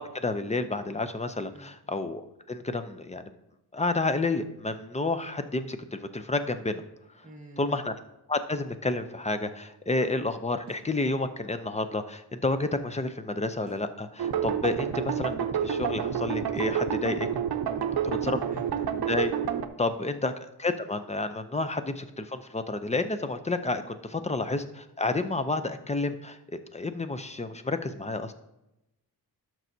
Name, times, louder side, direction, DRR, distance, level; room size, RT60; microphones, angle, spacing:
voice 1, 0.0-3.2 3.7-6.8 7.2-7.3 7.6-7.9 8.3-17.3 18.0-18.4 19.1-19.3 19.8-20.3 20.6-26.4 26.7-28.3, left 2 dB, 20° left, 10 dB, 0.5 m, -30 dB
voice 2, 7.2-7.8 17.6-18.8 19.8-20.1 24.1-24.3, right 2 dB, 20° right, 1 dB, 1.5 m, -48 dB
sound 1, 10.7-11.0 13.7-14.0 16.5-16.8, right 3 dB, 35° right, 1.7 m, -50 dB
sound 2, 14.2-19.7, right 8 dB, 70° right, 0.7 m, -29 dB
12.0 x 6.1 x 2.7 m, 0.91 s
wide cardioid pair, 100°, 39 cm